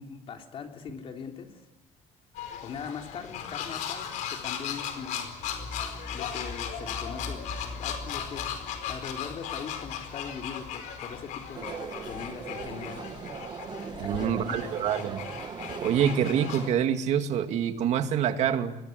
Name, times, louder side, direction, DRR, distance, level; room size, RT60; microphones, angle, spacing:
voice 1, 0.0-1.7 2.4-5.3 6.1-8.5 8.9-11.8 12.0-13.0 14.0-14.7, left 6 dB, 45° left, 4 dB, 3.5 m, -41 dB
sound 1, 2.3-16.7, left 9 dB, 80° left, 4.7 m, -37 dB
sound 2, 5.4-13.2 13.5-13.6, left 2 dB, 20° left, 5.3 m, -44 dB
sound 3, 11.6-16.7, right 6 dB, 35° right, 1.8 m, -39 dB
voice 2, 14.0-15.3 15.8-18.8, right 9 dB, 60° right, 8 dB, 2.2 m, -26 dB
26.0 x 21.0 x 9.5 m, 0.99 s
cardioid pair, 140°, 13 cm